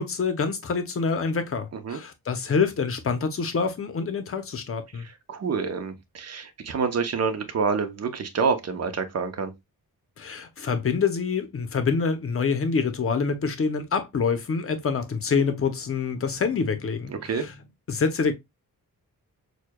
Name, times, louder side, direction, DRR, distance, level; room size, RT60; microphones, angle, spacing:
voice 1, 0.0-5.1 10.2-17.5 17.9-18.3, left 5 dB, 40° left, 0.7 m, -26 dB
voice 2, 4.9-9.5 17.1-17.4, right 5 dB, 45° right, 0.7 m, -27 dB
6.4 x 2.2 x 2.2 m
wide cardioid pair, 160°, 35 cm